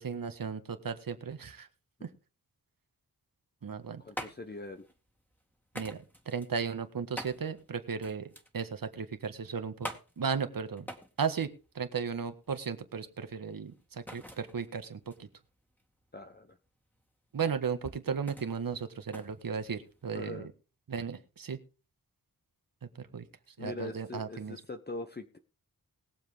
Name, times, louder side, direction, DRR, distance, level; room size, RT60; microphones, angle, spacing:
voice 1, 0.0-1.7 2.0-2.1 3.6-4.0 5.7-9.9 10.2-10.9 11.2-15.3 17.3-20.4 20.9-21.6 23.0-23.3 23.6-24.6, right 6 dB, 75° right, 8 dB, 1.7 m, -35 dB
sound 1, 3.6-20.2, equal, 5° left, 2.1 m, -48 dB
voice 2, 4.0-4.9 16.1-16.6 20.1-20.5 23.6-25.4, left 2 dB, 30° left, 7 dB, 1.0 m, -42 dB
20.5 x 7.5 x 3.6 m, 0.33 s
wide cardioid pair, 100°, 35 cm